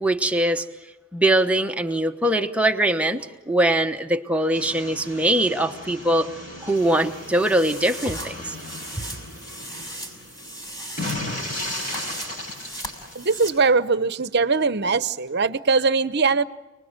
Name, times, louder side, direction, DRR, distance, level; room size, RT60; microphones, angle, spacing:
voice 1, 0.0-0.6 1.1-6.3 6.6-8.6 9.0-9.1, right 1 dB, 5° right, 4 dB, 1.0 m, -22 dB
sound 1, 4.5-13.6, left 1 dB, 40° left, 5.9 m, -36 dB
sound 2, 6.7-13.5, right 1 dB, 20° left, 5.5 m, -38 dB
voice 2, 13.1-16.4, right 4 dB, 50° right, 15 dB, 0.9 m, -21 dB
29.0 x 20.5 x 9.0 m, 1.2 s
head